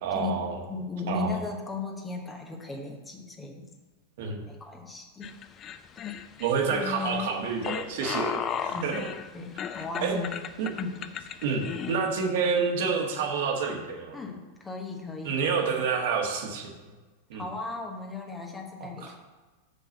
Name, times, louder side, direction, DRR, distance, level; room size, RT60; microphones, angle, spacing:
voice 1, 0.0-0.6 1.1-1.4 4.2-4.4 6.4-9.1 10.0-10.2 10.6-10.7 11.4-14.2 15.2-16.7 17.3-17.4 19.0-19.1, right 5 dB, 55° right, 1 dB, 1.5 m, -28 dB
voice 2, 0.7-3.7 4.4-5.3 6.0-6.2 8.7-9.1 9.3-10.4 10.7-11.0 14.1-15.4 17.3-19.2, left 3 dB, 10° left, 2 dB, 1.1 m, -36 dB
sound 1, 5.2-12.0, left 8 dB, 30° left, 0.4 m, -35 dB
6.4 x 5.4 x 7.1 m, 1.3 s
figure-of-eight pair, 90°, 0 cm